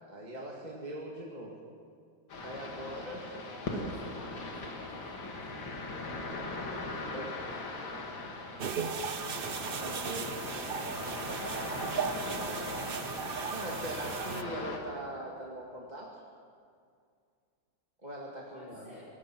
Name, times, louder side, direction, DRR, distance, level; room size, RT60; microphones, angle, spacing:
voice 1, 0.1-1.6 2.4-3.4 3.7-3.9 7.1-7.2 9.8-10.3 13.5-16.1 18.0-18.9, right 1 dB, 20° right, -2 dB, 2.1 m, -41 dB
sound 1, 2.3-14.8, left 2 dB, 90° left, 2.8 m, -40 dB
voice 2, 3.5-5.5 6.7-7.1 7.5-8.9 10.3-11.5 18.5-19.1, left 1 dB, 35° left, -8 dB, 4.3 m, -54 dB
sound 2, 8.6-14.4, right 6 dB, 60° right, 0.5 m, -36 dB
24.0 x 19.5 x 6.1 m, 2.2 s
omnidirectional pair, 2.1 m